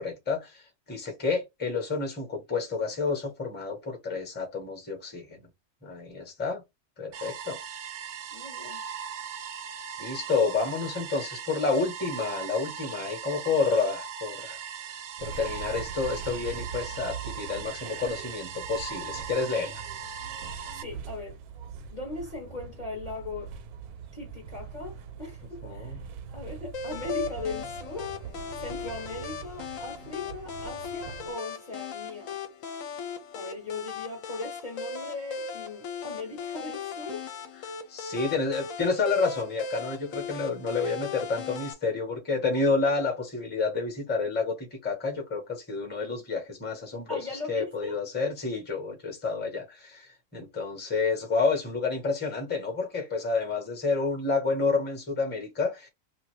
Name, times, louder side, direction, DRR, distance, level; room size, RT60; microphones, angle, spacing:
voice 1, 0.0-5.4 5.8-6.6 7.0-7.6 10.0-14.6 15.2-19.7 25.6-26.0 37.9-47.2 47.5-55.9, left 4 dB, 10° left, 0.7 m, -29 dB
sound 1, 7.1-20.8, right 7 dB, 65° right, 0.8 m, -39 dB
voice 2, 8.3-8.8 20.7-21.4 21.9-23.5 24.1-26.0 26.3-28.2 28.6-32.4 33.3-37.3 47.1-48.0, left 3 dB, 40° left, 0.7 m, -39 dB
sound 2, 15.2-31.3, right 7 dB, 85° right, 1.1 m, -42 dB
sound 3, 26.7-41.7, left 5 dB, 70° left, 1.0 m, -38 dB
2.8 x 2.5 x 3.0 m
omnidirectional pair, 1.5 m